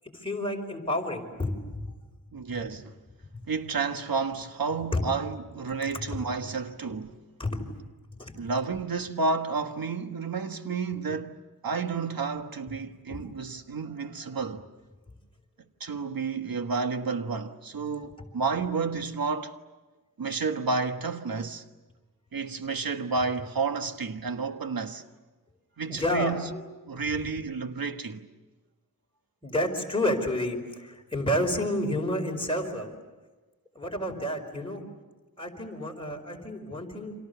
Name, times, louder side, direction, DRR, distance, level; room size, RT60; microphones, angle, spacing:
voice 1, 0.1-1.9 3.3-3.4 4.9-5.1 6.1-6.2 7.4-7.7 8.2-8.4 13.1-13.2 25.9-26.6 29.4-32.9 33.7-34.8 35.4-37.1, left 1 dB, 15° left, 5.0 m, -30 dB
voice 2, 2.3-3.0 3.5-7.2 8.4-14.7 15.8-19.5 20.2-21.6 22.3-25.0 25.8-26.5 26.9-28.3, right 4 dB, 80° right, 1.5 m, -31 dB
30.0 x 26.5 x 6.9 m
wide cardioid pair, 85°, 34 cm